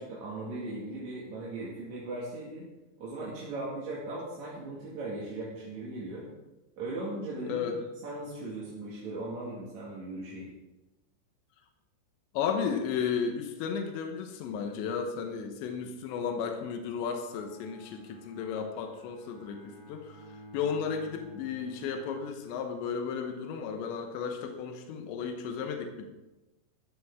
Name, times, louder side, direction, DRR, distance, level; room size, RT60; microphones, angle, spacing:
voice 1, 0.0-2.7 3.0-6.3 6.8-7.8 8.0-10.5, right 2 dB, 50° right, -6 dB, 2.9 m, -38 dB
voice 2, 12.3-20.3 20.5-26.1, left 6 dB, 85° left, 4 dB, 3.3 m, -34 dB
Bowed string instrument, 17.2-23.0, right 1 dB, 30° left, 3.5 m, -52 dB
13.5 x 13.0 x 3.7 m, 1.1 s
omnidirectional pair, 5.0 m